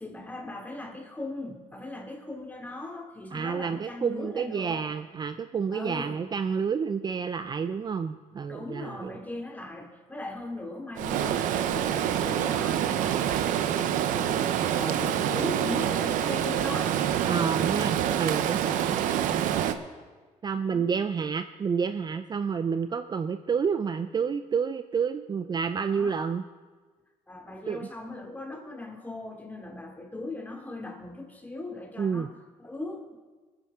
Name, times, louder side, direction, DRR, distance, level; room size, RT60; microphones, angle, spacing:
voice 1, 0.0-4.9 5.7-6.2 8.5-17.0 20.5-20.9 25.9-26.3 27.3-33.1, left 2 dB, 10° left, 1 dB, 2.6 m, -39 dB
voice 2, 3.3-9.1 17.3-19.0 19.3-19.6 20.4-26.4 27.7-27.9 32.0-32.3, right 6 dB, 30° right, 10 dB, 0.4 m, -29 dB
Stream, 11.0-19.7, right 10 dB, 75° right, 0.7 m, -26 dB
20.0 x 9.8 x 3.7 m, 1.4 s
supercardioid pair, 85°, 13 cm